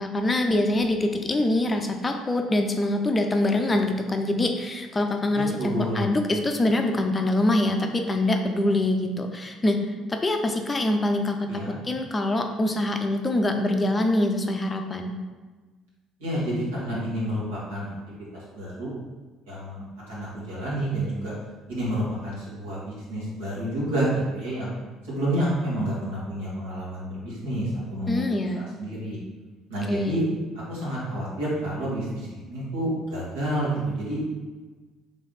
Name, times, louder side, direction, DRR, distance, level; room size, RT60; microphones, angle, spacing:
voice 1, 0.0-15.1 28.1-28.7 29.9-30.2, left 1 dB, 25° left, 4 dB, 0.5 m, -24 dB
voice 2, 5.3-6.1 11.5-11.8 16.2-17.9 18.3-18.9 19.5-21.3 21.7-24.7 25.0-28.2 28.5-29.2 29.7-30.2 30.7-34.2, right 1 dB, 75° right, -7 dB, 1.4 m, -29 dB
3.4 x 3.2 x 4.0 m, 1.3 s
figure-of-eight pair, 55°, 0 cm